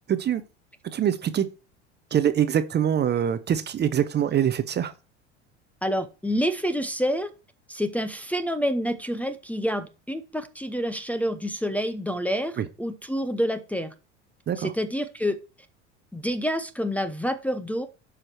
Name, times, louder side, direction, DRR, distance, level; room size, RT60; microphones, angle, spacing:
voice 1, 0.1-0.4 0.8-1.5 2.1-4.9 12.6-12.7 14.5-14.7, right 9 dB, 30° right, 0.8 m, -24 dB
voice 2, 5.8-7.3 7.7-13.9 14.6-15.4 16.1-17.9, equal, 5° left, 0.8 m, -28 dB
12.0 x 4.9 x 4.6 m
hypercardioid pair, 75°, 36 cm